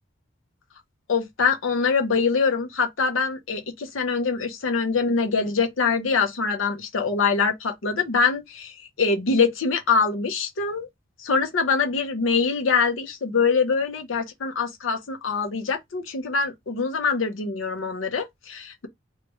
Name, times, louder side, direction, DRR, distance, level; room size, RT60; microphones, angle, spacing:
voice 1, 1.1-10.9 11.2-18.9, left 5 dB, 75° left, 0.6 m, -24 dB
3.2 x 2.2 x 3.0 m
head